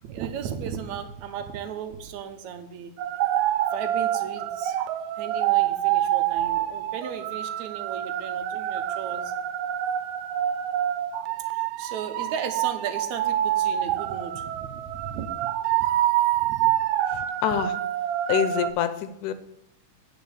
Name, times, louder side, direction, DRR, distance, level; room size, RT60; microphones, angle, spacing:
voice 1, 0.0-2.9 3.7-4.8 5.2-9.3 11.5-15.5 16.3-16.8, right 8 dB, 70° right, 7 dB, 1.9 m, -36 dB
sound 1, 3.0-18.7, right 12 dB, 90° right, 2.2 m, -26 dB
voice 2, 17.1-17.8 18.3-19.3, left 10 dB, 80° left, 11 dB, 2.1 m, -26 dB
9.1 x 4.8 x 7.0 m, 0.78 s
omnidirectional pair, 3.8 m